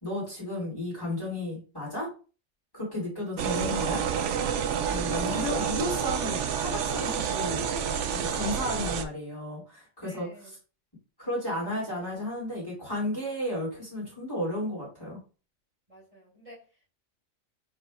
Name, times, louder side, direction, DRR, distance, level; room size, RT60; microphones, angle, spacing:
voice 1, 0.0-2.1 2.7-4.0 4.9-7.7 8.1-10.5 11.2-15.2, left 1 dB, 20° left, -7 dB, 2.6 m, -33 dB
sound 1, 3.4-9.0, right 7 dB, 75° right, 0.9 m, -29 dB
voice 2, 10.0-10.5 15.9-16.9, equal, 25° right, -9 dB, 2.6 m, -52 dB
4.9 x 4.1 x 2.4 m, 0.35 s
omnidirectional pair, 1.2 m